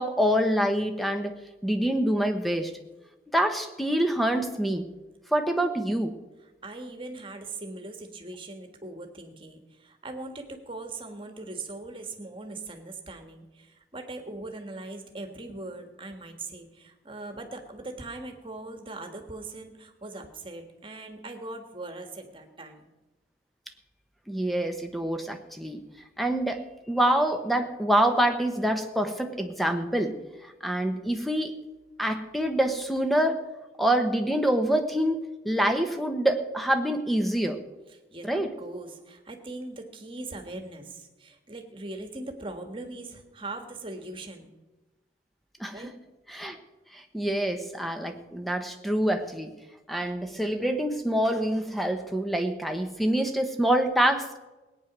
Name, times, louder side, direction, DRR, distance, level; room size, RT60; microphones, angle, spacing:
voice 1, 0.0-1.3 1.6-2.7 3.3-4.9 5.3-6.1 24.3-25.8 26.2-30.2 30.4-31.5 32.0-33.4 33.8-37.6 38.2-38.5 45.6-45.9 46.3-46.6 46.9-49.5 49.9-54.4, right 1 dB, ahead, 6 dB, 1.1 m, -26 dB
voice 2, 6.6-22.9 38.1-38.3 38.6-44.5 45.7-45.9, right 2 dB, 30° right, 5 dB, 1.7 m, -40 dB
18.5 x 9.3 x 6.1 m, 1.1 s
head